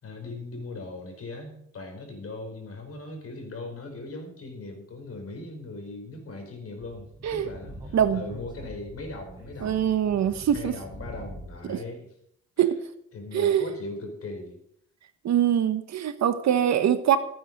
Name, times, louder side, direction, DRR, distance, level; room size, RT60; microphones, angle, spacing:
voice 1, 0.0-9.9 10.5-12.1 13.1-14.6, left 2 dB, 50° left, 4.7 m, -39 dB
Speech / Wind, 6.8-11.7, equal, 15° right, 6.2 m, -44 dB
voice 2, 9.6-10.7 11.7-11.8 12.6-12.8 13.3-13.7 15.2-17.2, right 10 dB, 65° right, 1.2 m, -23 dB
14.5 x 9.4 x 5.4 m
cardioid pair, 90°, 30 cm